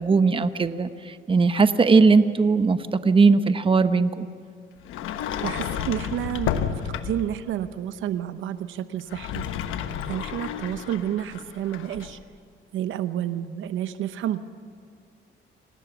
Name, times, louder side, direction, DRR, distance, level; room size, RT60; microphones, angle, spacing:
voice 1, 0.0-4.3, right 4 dB, 25° right, 11 dB, 1.0 m, -19 dB
Sliding door, 4.8-7.4 9.0-12.2, left 8 dB, 90° left, 1.2 m, -31 dB
voice 2, 5.4-9.4 10.0-12.2 12.7-14.4, right 11 dB, 80° right, 12 dB, 0.9 m, -30 dB
26.0 x 18.5 x 7.2 m, 2.2 s
cardioid pair, 90°, 20 cm